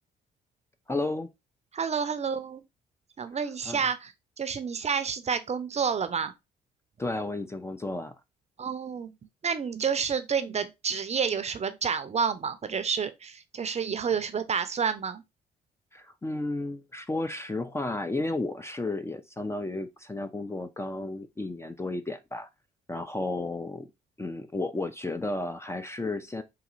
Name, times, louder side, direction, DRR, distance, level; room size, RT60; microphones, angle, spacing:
voice 1, 0.9-1.3 3.7-3.9 7.0-8.1 15.9-22.5 22.9-23.9 24.2-26.4, left 2 dB, 15° left, 0.4 m, -33 dB
voice 2, 1.7-2.6 3.2-4.1 4.4-6.3 8.6-9.1 9.4-15.2, right 6 dB, 35° right, 0.5 m, -29 dB
4.1 x 2.6 x 2.5 m
hypercardioid pair, 50°, 20 cm